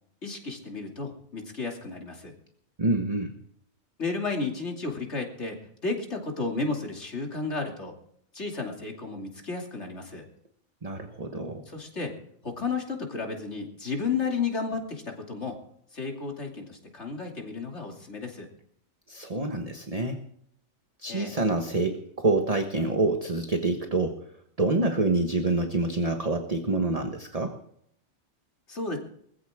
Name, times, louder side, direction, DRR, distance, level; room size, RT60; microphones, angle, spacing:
voice 1, 0.2-2.3 4.0-8.0 8.3-10.3 11.7-12.2 12.4-15.6 15.9-18.5 21.1-21.4 28.7-29.0, left 4 dB, 55° left, 1 dB, 3.1 m, -33 dB
voice 2, 2.8-3.3 10.8-11.6 19.1-20.2 21.0-24.3 24.6-27.6, right 2 dB, 30° right, 4 dB, 1.4 m, -27 dB
21.5 x 15.0 x 3.7 m, 0.68 s
omnidirectional pair, 1.4 m